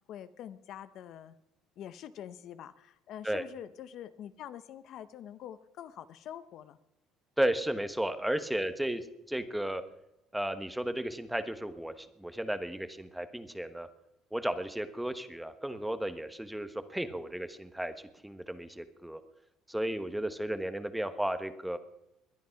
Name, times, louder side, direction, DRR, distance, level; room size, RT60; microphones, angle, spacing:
voice 1, 0.1-1.4 1.8-6.8, left 10 dB, 55° left, 13 dB, 0.8 m, -45 dB
voice 2, 7.4-9.8 10.3-13.9 14.3-17.9 18.2-19.2 19.7-21.8, right 1 dB, 5° right, 11 dB, 1.1 m, -34 dB
20.5 x 10.5 x 5.8 m, 0.88 s
cardioid pair, 130°, 0 cm